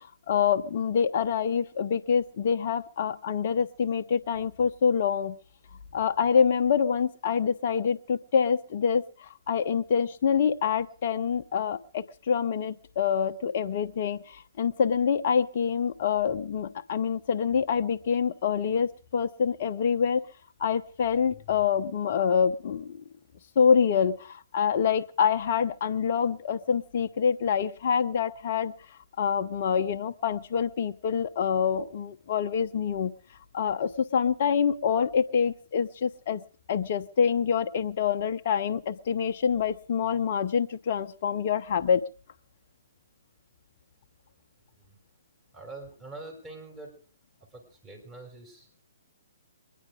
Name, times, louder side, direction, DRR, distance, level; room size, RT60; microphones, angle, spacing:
voice 1, 0.0-5.4 5.9-20.2 20.6-23.0 23.6-28.7 29.2-33.1 33.5-36.4 36.7-42.0, left 7 dB, 50° left, 0.8 m, -26 dB
voice 2, 45.5-46.9 47.5-48.8, right 2 dB, 15° right, 5.5 m, -45 dB
23.0 x 10.5 x 4.9 m
figure-of-eight pair, 130°, 0 cm